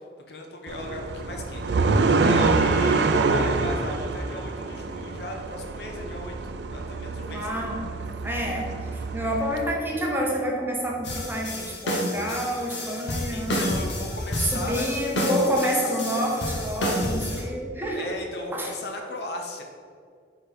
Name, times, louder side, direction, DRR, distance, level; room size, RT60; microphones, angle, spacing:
voice 1, 0.3-1.6 2.1-6.3 6.7-7.5 13.3-14.9 15.2-15.9 17.3-17.5 17.9-19.6, left 1 dB, 65° left, 2 dB, 0.8 m, -37 dB
sound 1, 0.7-9.6, right 3 dB, 75° right, 0.4 m, -26 dB
voice 2, 7.3-7.9 8.2-13.6 14.4-18.1 18.5-18.7, equal, 10° right, -1 dB, 0.8 m, -28 dB
sound 2, 11.0-17.4, left 1 dB, 90° left, 1.1 m, -29 dB
4.6 x 4.3 x 4.8 m, 2.1 s
head